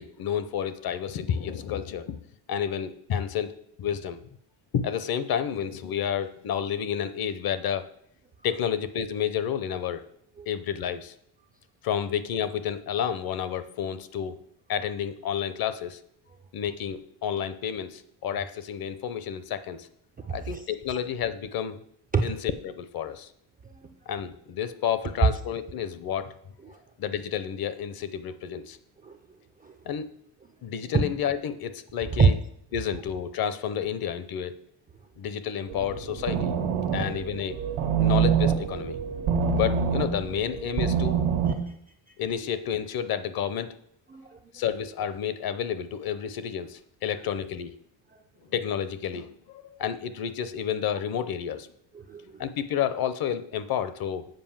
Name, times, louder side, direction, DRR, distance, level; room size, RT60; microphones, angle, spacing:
voice 1, 0.0-2.2 2.5-4.2 4.7-7.9 8.4-10.0 10.5-11.1 11.8-14.4 14.7-16.0 16.5-19.9 20.3-21.8 22.2-22.4 22.6-23.3 24.1-26.3 27.0-28.8 29.9-30.1 30.6-32.3 32.7-34.6 35.2-36.5 36.9-37.6 38.0-39.0 39.5-41.2 42.2-43.8 44.5-47.7 48.5-51.7 52.4-54.3, left 8 dB, 50° left, 13 dB, 0.7 m, -30 dB
voice 2, 20.2-21.0 22.1-22.4 23.6-24.0 25.2-25.3 26.6-26.8 29.0-29.2 29.6-29.9 30.9-31.0 32.1-32.3 36.9-37.0 41.5-41.8 42.1-42.2 44.1-44.4 47.1-47.2 48.1-48.2 51.9-52.4, right 5 dB, 20° right, 5 dB, 0.3 m, -27 dB
sound 1, 35.7-41.5, right 7 dB, 85° right, 1.4 m, -26 dB
7.8 x 4.9 x 7.2 m, 0.69 s
cardioid pair, 155°, 49 cm